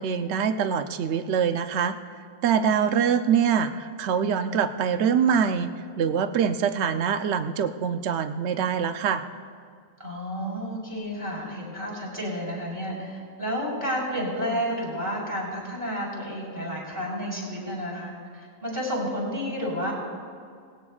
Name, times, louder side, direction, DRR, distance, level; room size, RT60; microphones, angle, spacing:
voice 1, 0.0-2.0 2.4-9.2, right 7 dB, 60° right, 9 dB, 0.8 m, -24 dB
voice 2, 10.0-19.9, equal, 15° right, -5 dB, 3.8 m, -31 dB
19.0 x 17.0 x 2.4 m, 2.1 s
omnidirectional pair, 1.5 m